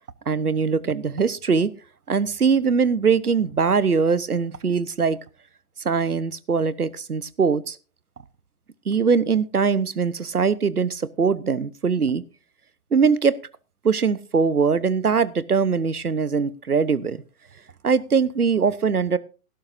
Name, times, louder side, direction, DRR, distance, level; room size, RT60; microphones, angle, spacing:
voice 1, 0.3-1.7 2.1-5.2 5.8-7.8 8.9-12.2 12.9-13.4 13.8-17.2 17.8-19.2, right 5 dB, 85° right, 0.9 m, -21 dB
18.5 x 11.5 x 2.6 m
figure-of-eight pair, 120°, 44 cm